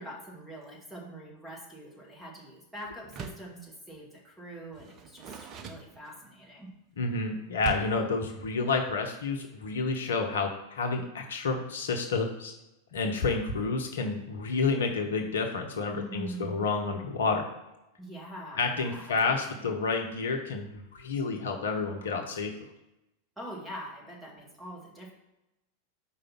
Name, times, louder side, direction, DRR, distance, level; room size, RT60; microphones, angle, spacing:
voice 1, 0.0-6.7 15.9-16.6 18.0-19.7 23.4-25.1, right 1 dB, 5° right, -4 dB, 2.1 m, -44 dB
Door, 3.0-3.6 4.7-6.4 7.6-8.1, right 7 dB, 35° right, 0.6 m, -41 dB
voice 2, 7.0-12.5 12.9-17.5 18.6-20.7 20.9-22.5, left 4 dB, 65° left, 4 dB, 0.8 m, -29 dB
5.1 x 4.0 x 5.8 m, 0.95 s
figure-of-eight pair, 90°, 0 cm